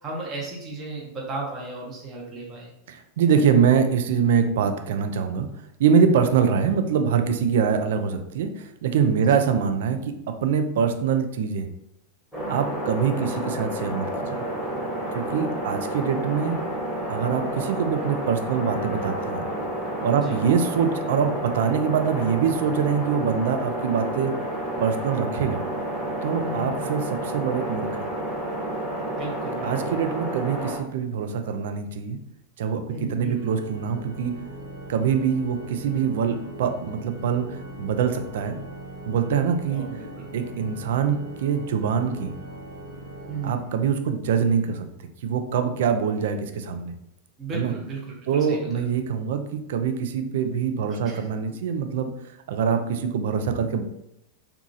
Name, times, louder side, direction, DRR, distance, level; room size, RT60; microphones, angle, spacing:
voice 1, 0.0-2.7 9.2-9.5 13.3-13.4 20.2-20.4 26.4-27.0 29.1-29.9 32.9-33.4 39.7-40.2 43.3-43.8 47.4-48.8 50.9-51.2, right 3 dB, 25° right, -3 dB, 0.7 m, -35 dB
voice 2, 2.9-5.5 5.8-11.7 12.5-14.1 15.1-16.6 17.1-19.5 20.0-24.3 24.8-25.6 26.2-28.1 29.6-32.2 32.6-34.4 34.9-38.6 39.1-39.9 40.3-42.3 43.4-44.9 45.2-46.9 47.5-47.7 48.3-52.1 52.5-53.8, right 7 dB, 55° right, 7 dB, 0.3 m, -24 dB
sound 1, 12.3-30.8, right 1 dB, ahead, 0.9 m, -30 dB
sound 2, 14.8-21.5, left 3 dB, 55° left, 0.4 m, -43 dB
Organ, 33.3-44.1, right 1 dB, 85° right, 0.8 m, -40 dB
2.8 x 2.3 x 2.6 m, 0.80 s
figure-of-eight pair, 90°, 0 cm